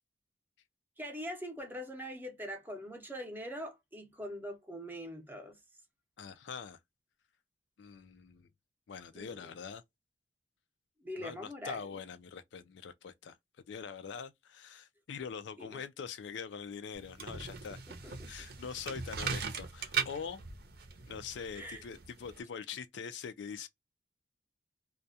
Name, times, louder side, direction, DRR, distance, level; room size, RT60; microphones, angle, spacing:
voice 1, 1.0-5.6 9.1-9.5 11.0-11.8 15.6-15.8 17.9-18.5 21.6-21.8, equal, 10° right, 0.6 m, -43 dB
voice 2, 6.2-6.8 7.8-8.5 8.9-9.8 11.2-13.4 13.7-20.4 21.1-23.7, left 6 dB, 70° left, 0.4 m, -43 dB
sound 1, 16.9-22.4, right 6 dB, 60° right, 0.6 m, -39 dB
2.3 x 2.1 x 2.6 m
head